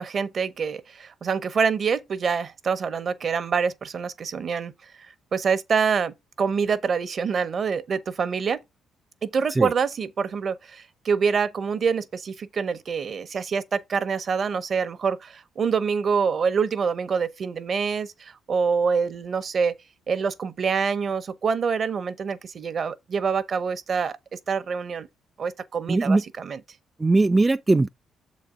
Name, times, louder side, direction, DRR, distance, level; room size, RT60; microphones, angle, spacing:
voice 1, 0.0-4.7 5.0-8.6 9.2-19.7 20.1-25.1 25.4-26.6, right 6 dB, 50° right, 0.8 m, -26 dB
voice 2, 25.9-26.2 27.0-27.9, right 2 dB, 20° right, 0.3 m, -20 dB
7.2 x 4.1 x 4.9 m
cardioid pair, 90°, 0 cm